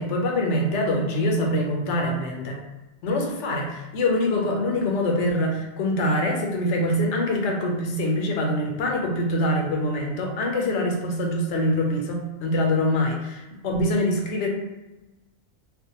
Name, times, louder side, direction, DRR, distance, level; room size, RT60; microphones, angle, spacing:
voice 1, 0.0-2.6 3.0-14.5, left 1 dB, 80° left, 1 dB, 0.9 m, -24 dB
2.5 x 2.1 x 2.7 m, 1.1 s
omnidirectional pair, 1.2 m